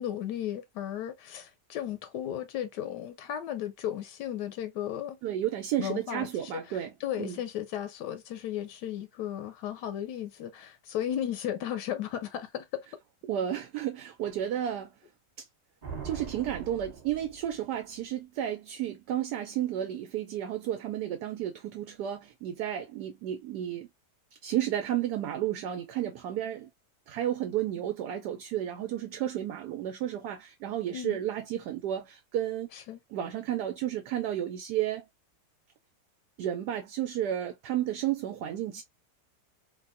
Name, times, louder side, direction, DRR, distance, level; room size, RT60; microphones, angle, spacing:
voice 1, 0.0-5.2 5.8-12.9 30.9-31.2 32.7-33.0, left 11 dB, 80° left, 1.2 m, -35 dB
voice 2, 5.2-7.4 13.2-14.9 15.4-15.5 16.0-23.9 24.4-26.7 27.1-32.7 33.1-35.1 36.4-38.8, right 11 dB, 75° right, 1.1 m, -32 dB
sound 1, 15.8-17.8, right 5 dB, 25° right, 1.2 m, -42 dB
3.5 x 2.2 x 2.5 m
omnidirectional pair, 1.8 m